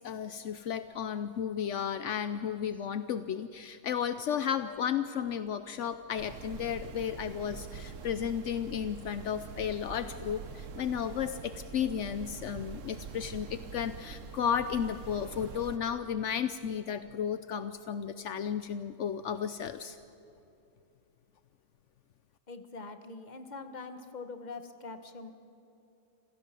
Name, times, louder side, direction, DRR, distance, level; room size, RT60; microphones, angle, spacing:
voice 1, 0.0-20.0, left 8 dB, 75° left, 11 dB, 1.0 m, -33 dB
sound 1, 6.1-15.8, right 6 dB, 80° right, 1.3 m, -45 dB
voice 2, 22.5-25.3, left 3 dB, 35° left, 8 dB, 1.4 m, -43 dB
27.0 x 16.5 x 7.6 m, 2.9 s
omnidirectional pair, 1.3 m